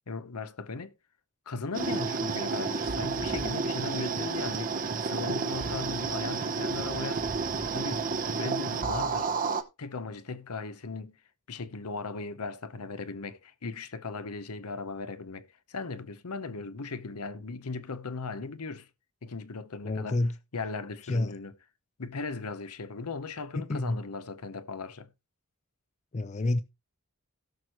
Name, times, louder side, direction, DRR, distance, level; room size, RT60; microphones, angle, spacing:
voice 1, 0.1-0.9 1.5-7.4 7.7-9.3 9.8-11.2 11.5-18.9 19.2-21.6 22.0-25.1, left 4 dB, 80° left, 0.9 m, -38 dB
sound 1, 1.7-9.6, right 4 dB, 40° right, 0.9 m, -31 dB
voice 2, 19.8-20.3 21.1-21.3 23.5-24.0 26.1-26.6, left 2 dB, 30° left, 0.5 m, -28 dB
17.5 x 6.3 x 3.0 m
head